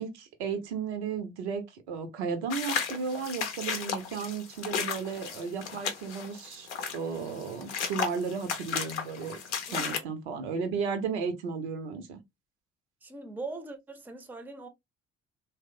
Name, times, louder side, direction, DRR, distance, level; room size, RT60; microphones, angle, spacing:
voice 1, 0.0-9.4 9.7-12.2, right 5 dB, 70° right, 0.6 m, -34 dB
sound 1, 2.5-10.0, left 6 dB, 80° left, 0.6 m, -34 dB
voice 2, 9.7-10.1 13.0-14.7, right 3 dB, 5° right, 0.5 m, -41 dB
3.0 x 2.0 x 2.5 m
figure-of-eight pair, 45°, 34 cm